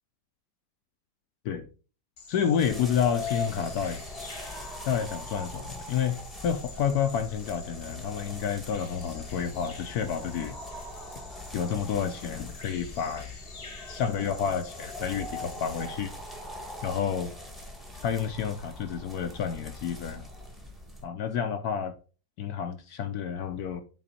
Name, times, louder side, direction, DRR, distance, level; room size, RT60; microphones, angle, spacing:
Bird vocalization bird call bird song, 2.2-15.9, left 4 dB, 40° left, 1.0 m, -48 dB
voice 1, 2.3-4.1 4.8-6.2 6.4-10.6 11.5-13.3 13.9-16.1 16.8-17.3 18.0-20.2 21.0-22.0 22.4-23.8, left 8 dB, 70° left, 1.0 m, -29 dB
sound 1, 2.6-21.0, left 1 dB, ahead, 0.8 m, -42 dB
7.7 x 4.1 x 4.1 m
omnidirectional pair, 2.1 m